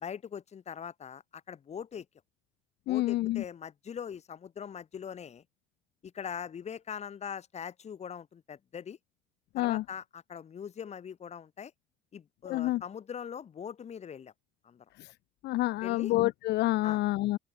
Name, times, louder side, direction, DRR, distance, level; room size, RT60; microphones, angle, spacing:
voice 1, 0.0-2.0 2.9-5.4 6.0-9.0 9.5-11.7 12.1-14.3 14.6-14.8 15.8-16.1 16.8-17.0, left 7 dB, 35° left, 1.5 m, -41 dB
voice 2, 2.9-3.4 9.5-9.8 12.5-12.8 15.0-15.1 15.4-17.4, left 17 dB, 55° left, 0.5 m, -28 dB
open air
cardioid pair, 130°, 20 cm